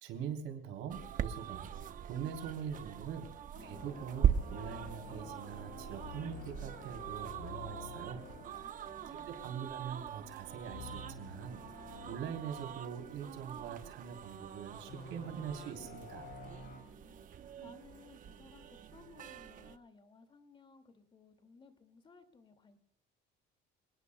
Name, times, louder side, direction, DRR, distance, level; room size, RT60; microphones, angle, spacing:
voice 1, 0.0-1.7 2.0-8.3 9.3-11.6 12.1-16.4, right 7 dB, 75° right, 5 dB, 3.4 m, -43 dB
sound 1, 0.9-19.8, right 9 dB, 40° right, 0.9 m, -41 dB
sound 2, 3.5-9.6 9.9-10.2 10.7-12.2 12.7-12.8 14.9-16.8, left 4 dB, 55° left, 7.3 m, -50 dB
voice 2, 8.4-9.4 16.7-22.8, left 4 dB, 25° left, 8 dB, 2.2 m, -60 dB
27.5 x 19.0 x 2.2 m, 0.82 s
cardioid pair, 155°, 20 cm